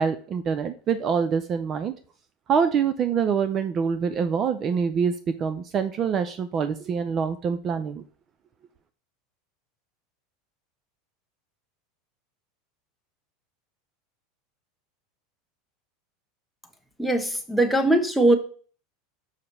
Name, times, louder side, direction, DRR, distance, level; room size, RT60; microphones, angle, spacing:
voice 1, 0.0-1.9 2.5-5.1 5.4-8.0, right 6 dB, 35° right, 10 dB, 0.5 m, -25 dB
voice 2, 17.0-18.4, right 1 dB, ahead, 4 dB, 1.0 m, -20 dB
6.6 x 2.8 x 5.4 m, 0.41 s
supercardioid pair, 110°, 0 cm